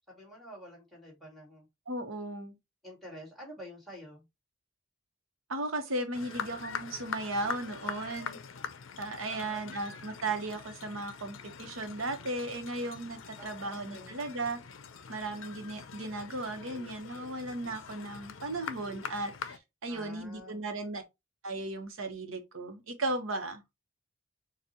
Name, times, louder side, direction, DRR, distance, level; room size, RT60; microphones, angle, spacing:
voice 1, 0.1-1.7 2.8-4.2 9.3-9.7 13.4-14.2 19.9-20.7, equal, ahead, 2.4 m, -48 dB
voice 2, 1.9-2.5 5.5-8.4 9.0-14.6 15.1-21.0 21.4-23.6, right 2 dB, 85° right, 1.1 m, -36 dB
sound 1, 6.1-19.6, left 6 dB, 75° left, 0.6 m, -43 dB
6.8 x 2.4 x 2.9 m
head